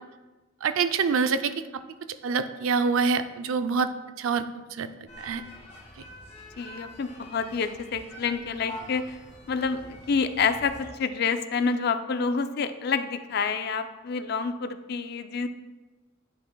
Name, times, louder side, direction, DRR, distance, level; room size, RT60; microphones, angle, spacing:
voice 1, 0.6-1.5 2.2-3.9 4.2-4.9 5.2-5.4, right 5 dB, 80° right, 10 dB, 0.4 m, -25 dB
sound 1, 5.1-10.9, left 1 dB, 35° left, 1.5 m, -45 dB
voice 2, 6.6-9.2 9.5-9.8 10.1-15.5, left 5 dB, 50° left, 10 dB, 0.4 m, -28 dB
10.0 x 5.7 x 2.2 m, 1.2 s
head